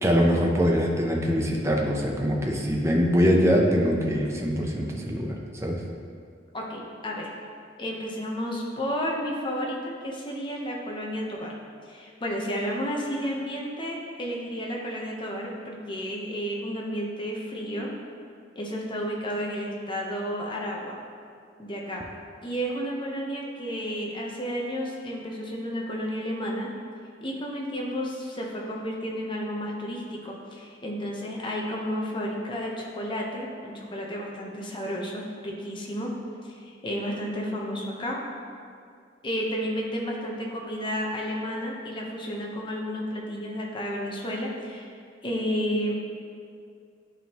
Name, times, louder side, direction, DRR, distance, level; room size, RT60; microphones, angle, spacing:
voice 1, 0.0-5.8, equal, 15° right, -1 dB, 0.7 m, -23 dB
voice 2, 6.5-7.3 7.8-9.8 10.0-11.5 11.9-17.9 18.6-21.0 21.6-22.0 22.4-26.7 27.2-36.1 36.4-38.2 39.2-44.9 45.2-45.9, equal, 25° left, -2 dB, 0.9 m, -32 dB
11.0 x 3.7 x 2.9 m, 2.2 s
head